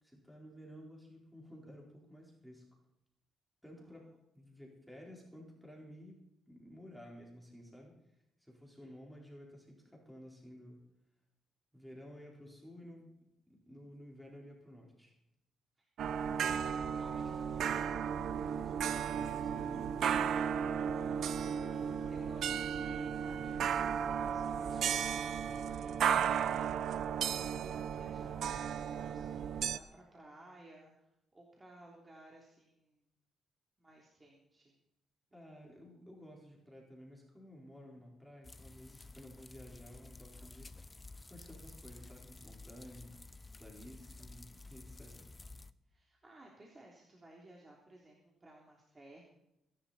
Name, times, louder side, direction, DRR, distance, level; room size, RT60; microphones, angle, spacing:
voice 1, 0.0-2.8 3.6-8.0 8.4-10.9 11.7-15.2 18.3-20.0 35.3-40.8 41.3-43.2 43.6-45.3, equal, ahead, -2 dB, 4.4 m, -54 dB
voice 2, 15.8-16.3 16.6-18.1 21.0-26.8 27.1-33.0 33.8-34.8 35.3-35.7 44.1-44.3 44.5-44.7 45.9-49.2, right 1 dB, 25° right, -2 dB, 3.3 m, -58 dB
sound 1, 16.0-29.8, right 8 dB, 70° right, 0.7 m, -34 dB
sound 2, 38.4-45.7, left 3 dB, 20° left, 0.7 m, -53 dB
22.5 x 11.0 x 4.3 m, 0.86 s
cardioid pair, 90°, 0 cm